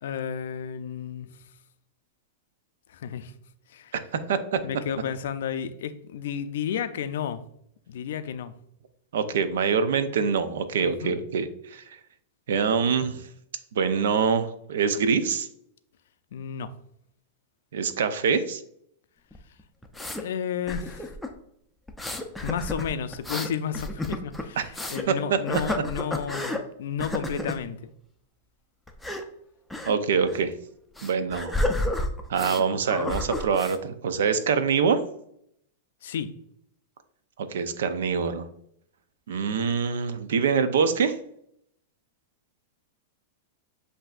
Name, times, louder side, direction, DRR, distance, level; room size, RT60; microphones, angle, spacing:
voice 1, 0.0-1.3 2.9-3.3 3.7-3.9 4.6-7.4 7.9-8.5 10.8-11.2 16.3-16.7 20.1-21.1 22.4-27.8 36.0-36.4, left 8 dB, 75° left, 0.4 m, -32 dB
voice 2, 4.3-4.6 9.1-11.8 12.5-13.2 13.7-15.5 17.7-18.6 24.6-24.7 25.1-25.2 29.9-30.5 31.0-31.5 32.3-35.0 37.5-38.5 39.3-41.2, right 6 dB, 80° right, 0.5 m, -24 dB
sound 1, 19.3-20.2 20.7-21.3 21.9-25.1 25.5-26.6 27.0-27.6 28.9-29.2 29.7-29.9 30.2-30.4 31.0-32.6 32.9-33.8, left 1 dB, 5° left, 0.5 m, -31 dB
7.8 x 2.6 x 2.4 m
hypercardioid pair, 135°, 0 cm